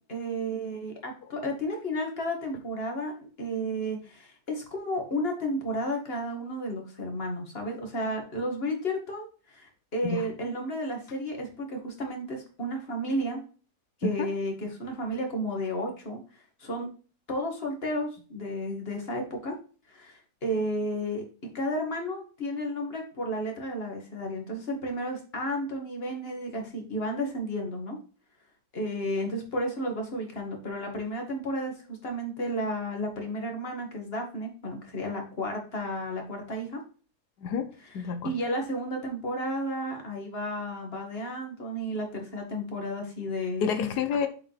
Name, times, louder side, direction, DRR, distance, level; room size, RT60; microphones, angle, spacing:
voice 1, 0.1-13.4 14.0-16.9 17.3-19.5 19.9-21.2 21.5-28.0 28.7-36.8 38.2-43.9, equal, 40° left, 2 dB, 2.3 m, -32 dB
voice 2, 37.4-38.3 43.6-44.3, left 6 dB, 85° left, 9 dB, 1.4 m, -29 dB
7.5 x 5.1 x 3.4 m, 0.37 s
omnidirectional pair, 1.7 m